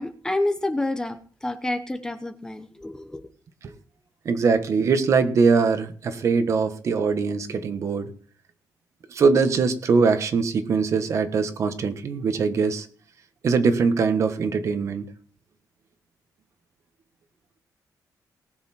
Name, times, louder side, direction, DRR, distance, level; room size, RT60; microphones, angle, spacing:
voice 1, 0.0-3.2, left 1 dB, 10° left, 9 dB, 0.8 m, -28 dB
voice 2, 4.2-8.1 9.1-12.9 13.4-15.1, right 5 dB, 45° right, 9 dB, 1.3 m, -22 dB
19.5 x 7.0 x 4.3 m, 0.43 s
wide cardioid pair, 175°, 7 cm